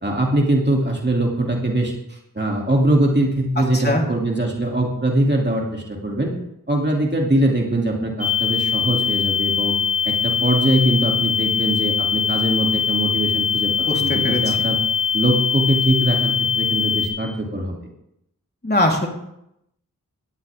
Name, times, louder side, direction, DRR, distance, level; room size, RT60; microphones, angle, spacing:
voice 1, 0.0-1.9 2.3-6.3 6.7-9.7 10.0-13.7 14.0-14.8 15.1-17.8, right 1 dB, 30° right, -1 dB, 2.8 m, -21 dB
voice 2, 3.6-4.0 13.9-14.7 18.6-19.1, left 1 dB, 30° left, -1 dB, 3.6 m, -22 dB
sound 1, 8.2-17.1, left 7 dB, 85° left, 3.2 m, -22 dB
17.5 x 13.0 x 3.6 m, 0.80 s
wide cardioid pair, 60°, 33 cm